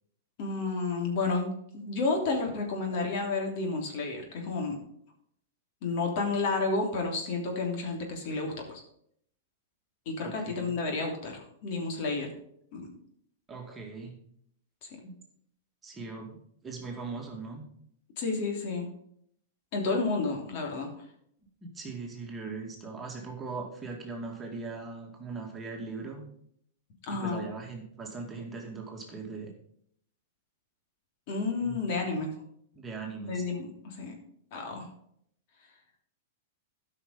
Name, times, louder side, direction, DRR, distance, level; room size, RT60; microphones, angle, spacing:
voice 1, 0.4-4.8 5.8-8.8 10.0-12.3 12.7-12.9 18.2-18.9 19.7-20.9 27.0-27.4 31.3-32.3 33.2-34.2 34.5-34.9, left 3 dB, 55° left, 1 dB, 3.0 m, -31 dB
voice 2, 10.2-10.8 13.5-14.1 15.0-15.2 15.8-16.4 16.6-17.7 21.6-26.2 27.1-29.5 31.6-31.8 32.7-33.4, right 4 dB, 15° right, 1 dB, 2.2 m, -40 dB
12.5 x 5.9 x 5.2 m, 0.69 s
hypercardioid pair, 120°, 0 cm